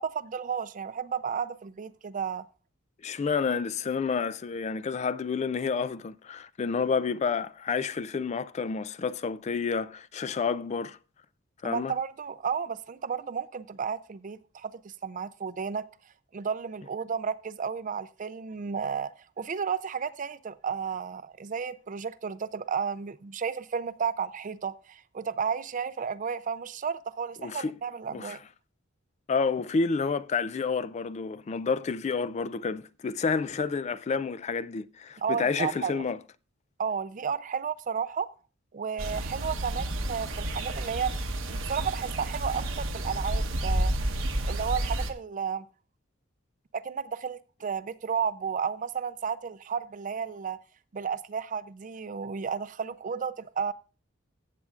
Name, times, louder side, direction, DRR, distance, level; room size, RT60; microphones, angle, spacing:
voice 1, 0.0-2.4 11.6-15.8 16.3-19.1 19.4-28.4 35.2-36.0 36.8-38.3 38.7-41.2 41.5-43.9 44.5-45.7 46.7-50.6 50.9-53.7, right 6 dB, 40° right, 0.4 m, -32 dB
voice 2, 3.0-11.0 11.6-11.9 27.4-27.7 28.1-28.4 29.3-36.2, left 5 dB, 35° left, 0.3 m, -29 dB
sound 1, 39.0-45.1, right 1 dB, 70° right, 1.0 m, -30 dB
15.0 x 7.6 x 2.4 m
head